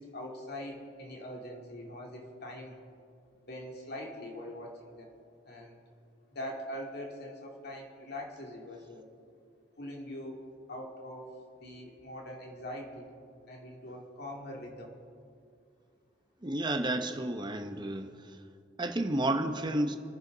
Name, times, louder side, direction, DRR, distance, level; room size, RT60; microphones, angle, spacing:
voice 1, 0.0-2.8 3.5-5.1 5.5-5.8 6.3-9.1 9.8-11.3 11.6-13.1 13.5-14.9, left 1 dB, 55° left, 0 dB, 2.5 m, -43 dB
voice 2, 16.4-18.1 18.8-20.0, right 1 dB, 25° right, 6 dB, 0.9 m, -31 dB
26.5 x 10.0 x 4.0 m, 2.3 s
head